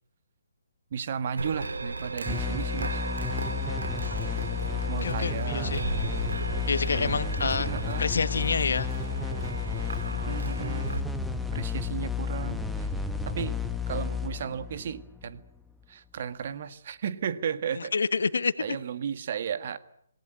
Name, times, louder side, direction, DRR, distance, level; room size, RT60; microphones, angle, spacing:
voice 1, 0.9-3.0 4.9-5.9 6.9-8.1 10.1-11.1 11.5-12.9 13.2-13.6 13.9-15.4 15.9-17.9 18.6-19.8, right 7 dB, 45° right, 12 dB, 1.7 m, -34 dB
sound 1, 1.3-11.0, right 3 dB, 70° right, 2.9 m, -36 dB
sound 2, 2.2-15.6, left 5 dB, ahead, 1.6 m, -32 dB
voice 2, 5.0-5.8 6.7-7.7 8.0-8.9 17.8-18.5, left 4 dB, 65° left, 13 dB, 1.6 m, -27 dB
27.0 x 19.0 x 9.5 m, 0.70 s
figure-of-eight pair, 135°, 0 cm